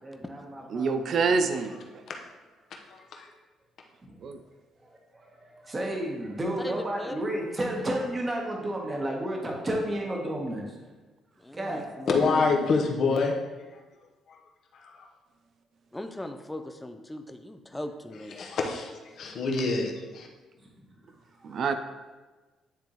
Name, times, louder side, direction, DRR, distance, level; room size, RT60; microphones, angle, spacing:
voice 1, 0.0-0.9 1.3-1.4 4.0-4.2 4.8-10.9 11.5-12.3 20.6-20.8 21.4-21.6, right 1 dB, 25° right, -1 dB, 1.3 m, -32 dB
voice 2, 0.7-2.0 4.2-4.4 21.4-21.7, right 4 dB, 55° right, 9 dB, 0.4 m, -27 dB
voice 3, 2.9-3.3 12.1-13.3 14.3-14.4 14.7-15.1 18.4-20.3, left 4 dB, 60° left, 2 dB, 1.0 m, -27 dB
voice 4, 6.6-7.3 11.4-12.9 15.9-18.4, left 1 dB, 10° left, 7 dB, 0.5 m, -39 dB
10.0 x 3.5 x 3.1 m, 1.3 s
cardioid pair, 100°, 0 cm